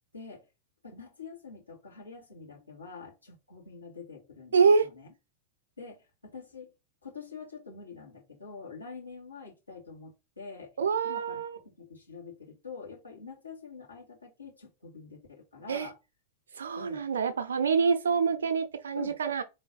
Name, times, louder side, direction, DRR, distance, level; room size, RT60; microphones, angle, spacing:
voice 1, 0.1-0.5 0.8-4.6 4.8-5.1 5.8-6.7 7.0-10.7 11.0-16.0 16.8-17.1 18.9-19.2, left 5 dB, 80° left, 1.9 m, -46 dB
voice 2, 4.5-4.9 10.8-11.6 15.7-15.9 16.6-19.4, right 5 dB, 70° right, 0.6 m, -26 dB
3.8 x 3.3 x 3.9 m
figure-of-eight pair, 90°, 0 cm